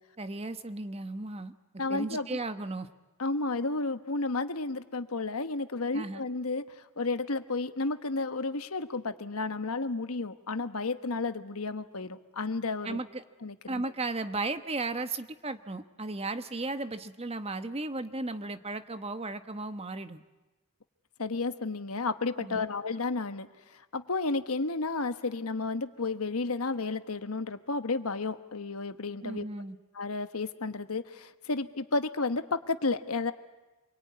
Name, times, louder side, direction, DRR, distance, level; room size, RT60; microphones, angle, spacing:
voice 1, 0.2-1.5 1.9-2.9 5.9-6.2 12.8-13.2 13.7-20.2 22.4-22.6 29.2-29.8, right 2 dB, 25° right, 10 dB, 1.1 m, -35 dB
voice 2, 1.8-2.4 3.2-13.0 13.4-13.8 21.2-29.5 29.9-33.3, left 3 dB, 80° left, 10 dB, 1.3 m, -32 dB
27.5 x 22.5 x 9.6 m, 1.1 s
head